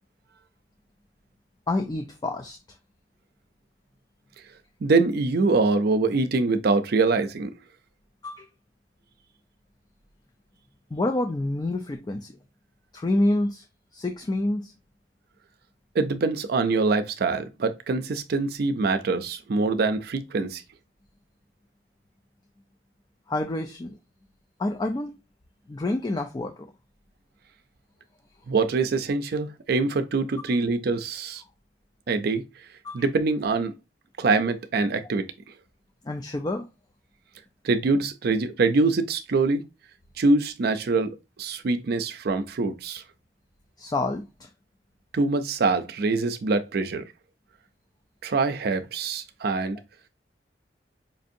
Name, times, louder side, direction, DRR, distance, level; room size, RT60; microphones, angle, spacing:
voice 1, 1.7-2.6 8.2-8.5 10.9-12.3 12.9-13.6 13.9-14.7 23.3-24.0 24.6-25.1 25.7-26.5 32.8-33.0 36.1-36.7 43.8-44.5, left 2 dB, 25° left, 0.4 m, -27 dB
voice 2, 4.8-7.5 15.9-20.6 28.5-31.4 32.1-32.4 32.9-33.7 34.2-35.3 37.6-39.6 40.2-43.0 45.1-47.0 48.2-49.8, right 3 dB, 60° right, 0.4 m, -24 dB
5.1 x 2.6 x 2.5 m
head